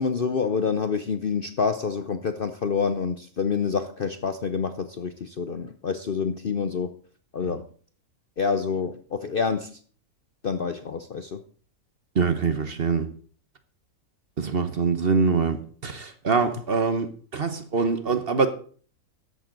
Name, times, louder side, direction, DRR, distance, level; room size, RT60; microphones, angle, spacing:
voice 1, 0.0-6.9 7.3-7.7 8.4-9.8 10.4-11.4, left 5 dB, 50° left, 9 dB, 0.7 m, -27 dB
voice 2, 12.2-13.1 14.4-18.5, right 4 dB, 45° right, 10 dB, 1.1 m, -24 dB
14.0 x 11.0 x 3.9 m, 0.43 s
omnidirectional pair, 1.6 m